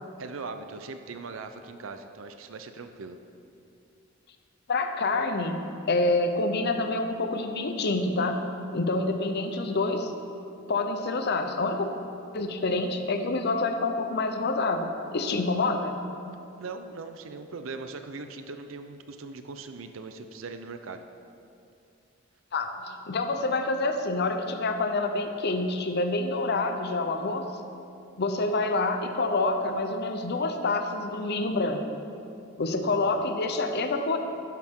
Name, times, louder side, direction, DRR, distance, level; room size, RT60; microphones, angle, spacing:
voice 1, 0.2-3.2 16.6-21.0 33.0-33.1, right 4 dB, 85° right, 8 dB, 0.6 m, -40 dB
voice 2, 4.7-8.4 8.7-10.1 10.7-11.9 12.3-16.0 22.5-27.4 28.2-31.8 32.6-34.2, left 2 dB, 55° left, 6 dB, 0.7 m, -27 dB
11.5 x 10.5 x 3.7 m, 2.6 s
head